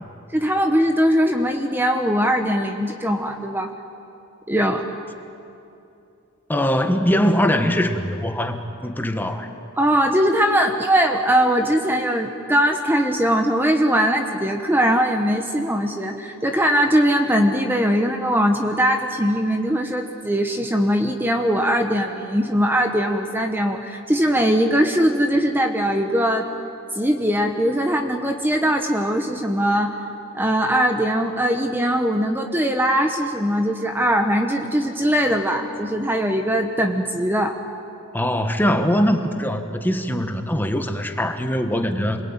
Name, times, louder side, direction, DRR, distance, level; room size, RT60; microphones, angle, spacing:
voice 1, 0.3-3.7 4.5-4.8 9.8-26.5 26.9-29.9 30.3-37.6, equal, 10° right, 4 dB, 1.1 m, -20 dB
voice 2, 6.5-9.5 38.1-42.2, equal, 10° left, 6 dB, 1.3 m, -22 dB
27.5 x 21.5 x 9.0 m, 2.7 s
head